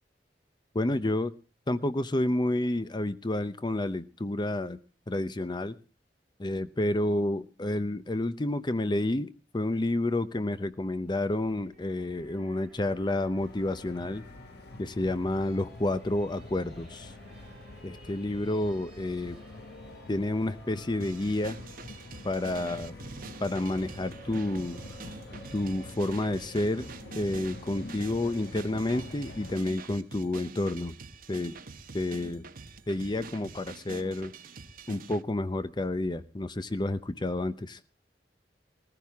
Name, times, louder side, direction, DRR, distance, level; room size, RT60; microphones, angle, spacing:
voice 1, 0.7-1.3 1.7-4.8 5.1-5.8 6.4-14.2 14.8-17.1 17.8-19.4 20.1-21.6 22.2-23.0 23.4-24.8 25.5-26.9 27.1-31.0 31.3-31.5 31.9-32.5 32.9-34.3 34.9-37.8, left 1 dB, 25° left, 13 dB, 0.6 m, -30 dB
sound 1, 10.6-27.5, right 1 dB, ahead, 5.1 m, -54 dB
sound 2, 13.4-29.6, left 2 dB, 65° left, 1.2 m, -46 dB
sound 3, 21.0-35.2, right 4 dB, 55° right, 0.9 m, -46 dB
19.0 x 15.0 x 3.5 m, 0.33 s
head